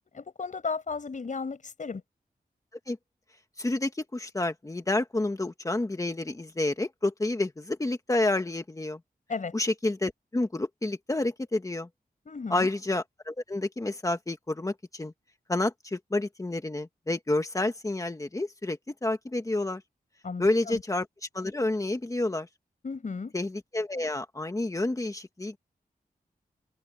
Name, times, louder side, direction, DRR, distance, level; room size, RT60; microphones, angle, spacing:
voice 1, 0.1-2.0 9.3-9.5 12.3-12.7 20.2-20.8 22.8-23.3, left 4 dB, 55° left, 5.9 m, -34 dB
voice 2, 3.6-9.0 9.5-11.9 12.5-15.1 15.5-19.8 20.4-21.1 21.3-22.5 23.3-25.6, left 2 dB, 20° left, 1.6 m, -29 dB
wide cardioid pair, 145°, 16 cm